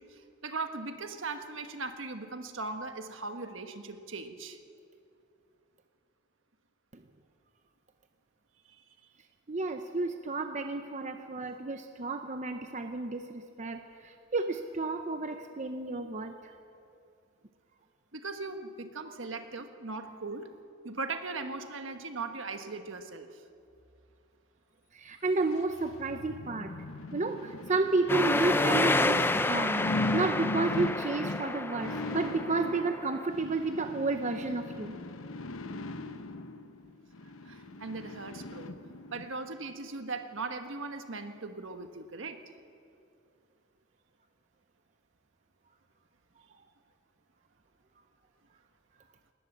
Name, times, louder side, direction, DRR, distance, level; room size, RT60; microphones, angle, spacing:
voice 1, 0.0-4.6 8.7-8.9 18.1-20.5 20.8-23.4 37.4-38.8 39.1-42.4, right 3 dB, 70° right, 7 dB, 1.4 m, -39 dB
voice 2, 9.5-16.5 19.0-19.1 24.9-26.7 27.1-29.8 30.1-35.0, right 3 dB, 35° right, 7 dB, 0.8 m, -31 dB
sound 1, 25.3-39.2 39.7-39.8, left 2 dB, 85° left, 0.9 m, -39 dB
sound 2, 28.1-33.3, left 2 dB, 10° left, 0.5 m, -29 dB
19.5 x 19.0 x 7.3 m, 2.5 s
head